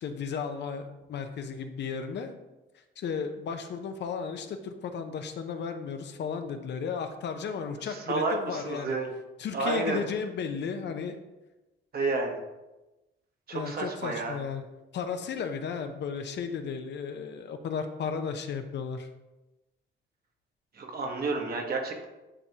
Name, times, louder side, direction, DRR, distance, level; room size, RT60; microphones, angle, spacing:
voice 1, 0.0-2.3 3.0-9.0 9.4-11.2 13.5-14.6 14.9-19.1, left 6 dB, 60° left, 7 dB, 0.7 m, -34 dB
voice 2, 7.8-9.1 9.5-10.0 11.9-12.4 13.5-14.4 20.7-22.1, right 3 dB, 50° right, 2 dB, 1.2 m, -30 dB
9.8 x 3.4 x 2.9 m, 1.0 s
cardioid pair, 90°, 20 cm